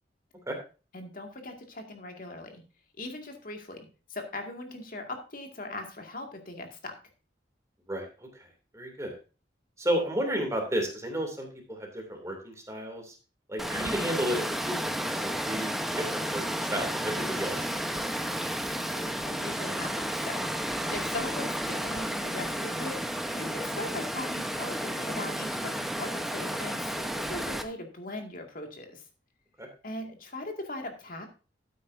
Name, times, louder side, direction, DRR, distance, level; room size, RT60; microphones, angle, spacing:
voice 1, 0.9-2.6 3.0-6.9 13.7-14.2 18.8-29.0 29.8-31.3, left 2 dB, 50° left, 4 dB, 2.2 m, -40 dB
voice 2, 8.7-9.1 9.8-13.1 13.5-18.0 29.6-29.7, equal, 15° right, 2 dB, 2.8 m, -32 dB
Water, 13.6-27.6, equal, ahead, 1.0 m, -32 dB
13.0 x 9.2 x 2.7 m, 0.33 s
head